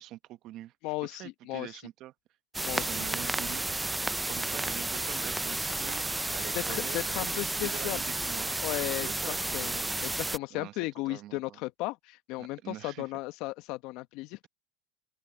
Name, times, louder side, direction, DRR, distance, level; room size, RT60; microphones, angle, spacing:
voice 1, 0.0-0.7 1.0-2.1 2.7-3.8 4.3-6.1 6.3-8.5 9.0-9.8 10.5-10.8 11.0-11.6 12.4-13.1, right 14 dB, 50° right, 1.1 m, -44 dB
voice 2, 0.8-1.7 2.6-3.0 6.5-8.0 8.6-14.5, left 20 dB, 60° left, 1.2 m, -35 dB
sound 1, 2.5-10.4, right 2 dB, 10° right, 0.5 m, -32 dB
open air
supercardioid pair, 110°, 0 cm